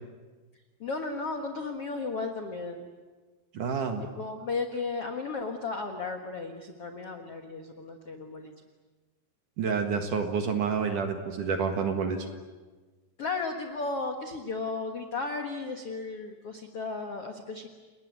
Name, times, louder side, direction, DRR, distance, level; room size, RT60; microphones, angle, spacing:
voice 1, 0.8-2.9 4.0-8.5 13.2-17.7, left 3 dB, 65° left, 5 dB, 1.5 m, -34 dB
voice 2, 3.5-4.0 9.6-12.2, right 5 dB, 55° right, 5 dB, 2.6 m, -28 dB
30.0 x 20.0 x 9.5 m, 1.3 s
omnidirectional pair, 5.3 m